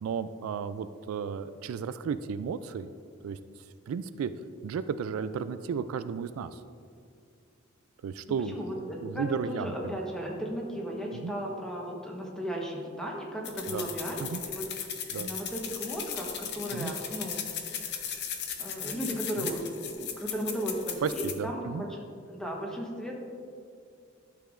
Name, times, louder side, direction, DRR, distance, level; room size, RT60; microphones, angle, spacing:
voice 1, 0.0-2.9 3.2-3.4 3.9-4.3 4.6-6.6 8.0-8.6 9.0-10.0 11.1-11.3 13.7-13.9 14.2-14.4 15.1-15.3 16.7-16.9 19.4-19.5 21.0-21.8, right 6 dB, 85° right, 12 dB, 0.3 m, -33 dB
voice 2, 8.5-14.9 15.1-17.5 18.6-22.0 22.3-23.1, equal, 5° left, -2 dB, 1.1 m, -35 dB
sound 1, 13.4-21.3, left 8 dB, 55° left, 0.7 m, -37 dB
12.0 x 6.7 x 2.5 m, 2.3 s
head